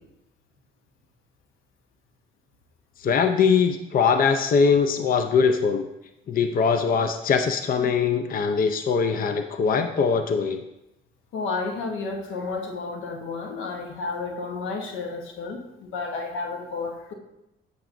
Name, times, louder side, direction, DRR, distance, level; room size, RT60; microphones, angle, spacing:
voice 1, 3.0-5.9 6.3-10.6, left 5 dB, 45° left, 7 dB, 0.5 m, -22 dB
voice 2, 11.3-17.1, left 4 dB, 90° left, 4 dB, 1.1 m, -31 dB
9.0 x 7.1 x 2.5 m, 0.91 s
cardioid pair, 90°, 20 cm